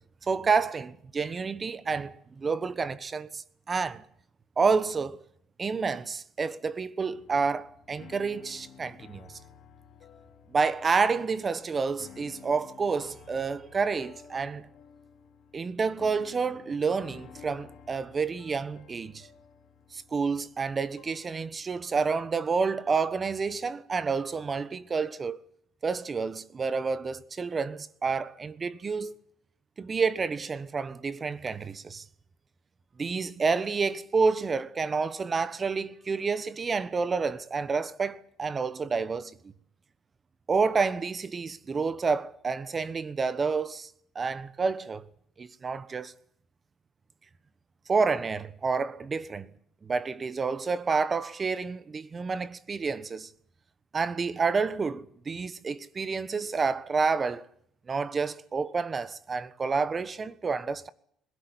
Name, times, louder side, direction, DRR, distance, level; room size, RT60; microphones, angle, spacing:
voice 1, 0.2-4.0 4.6-5.2 5.6-9.4 10.5-14.6 15.5-19.3 19.9-25.4 25.8-29.1 29.8-32.0 33.0-39.4 40.5-43.9 44.1-45.1 45.4-46.1 47.9-49.5 49.8-53.3 53.9-57.5 57.9-60.9, right 4 dB, 35° right, 1.2 m, -29 dB
sound 1, 7.1-23.3, left 7 dB, 65° left, 3.5 m, -53 dB
21.0 x 16.5 x 9.9 m
supercardioid pair, 75°, 0 cm